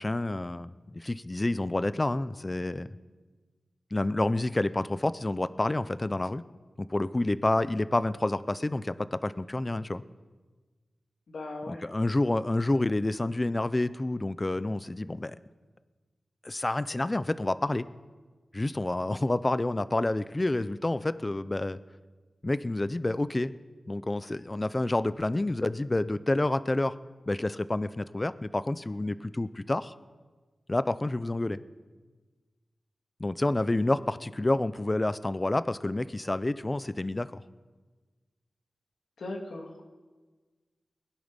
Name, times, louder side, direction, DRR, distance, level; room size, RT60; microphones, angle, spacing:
voice 1, 0.0-2.9 3.9-6.4 6.8-10.0 11.7-15.4 16.4-17.9 18.5-21.8 22.4-23.5 23.9-27.0 27.3-29.9 30.7-31.6 33.2-37.4, left 2 dB, 25° left, 15 dB, 0.5 m, -29 dB
voice 2, 11.3-11.8 39.2-39.8, left 2 dB, 80° left, 0 dB, 2.1 m, -38 dB
21.0 x 10.5 x 5.3 m, 1.3 s
wide cardioid pair, 85°, 0 cm